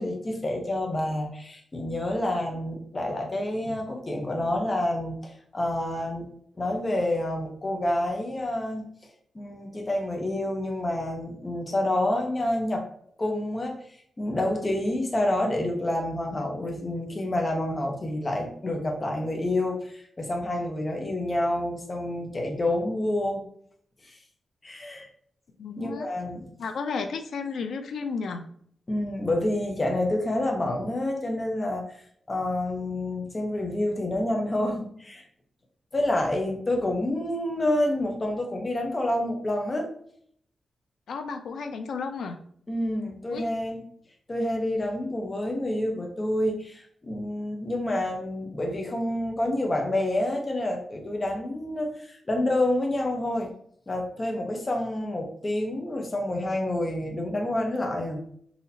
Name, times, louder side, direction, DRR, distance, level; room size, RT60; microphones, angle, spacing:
voice 1, 0.0-6.3 6.6-8.9 9.3-12.9 13.2-13.8 14.2-23.4 24.0-24.2 24.6-25.1 25.8-26.4 28.9-31.9 32.3-35.2 35.9-39.9 42.7-43.8 44.3-53.5 53.9-58.2, left 1 dB, 25° left, 1 dB, 0.8 m, -28 dB
voice 2, 25.6-26.1 26.6-28.4 41.1-42.4 43.3-43.5, left 5 dB, 85° left, 6 dB, 0.4 m, -33 dB
4.1 x 2.8 x 2.7 m, 0.62 s
wide cardioid pair, 135°, 0 cm